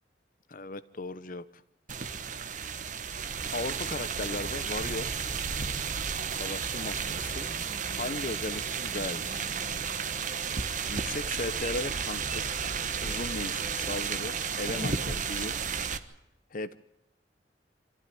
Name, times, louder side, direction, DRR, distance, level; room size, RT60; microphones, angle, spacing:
voice 1, 0.5-1.6 3.5-5.2 6.3-7.5 8.0-9.5 10.9-12.6 13.0-15.6 16.5-16.8, left 2 dB, 50° left, 15 dB, 0.8 m, -37 dB
sound 1, 1.9-16.0, right 6 dB, 45° right, 1.3 m, -33 dB
25.5 x 15.0 x 9.4 m, 0.86 s
head